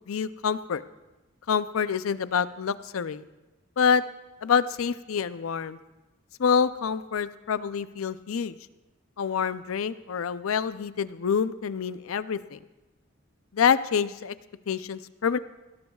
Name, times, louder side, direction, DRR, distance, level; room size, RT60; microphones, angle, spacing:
voice 1, 0.1-0.8 1.5-3.2 3.8-4.0 4.4-5.8 6.4-8.6 9.2-12.6 13.5-14.3 14.7-15.4, left 6 dB, 90° left, 14 dB, 0.5 m, -26 dB
19.5 x 17.0 x 2.4 m, 1.1 s
head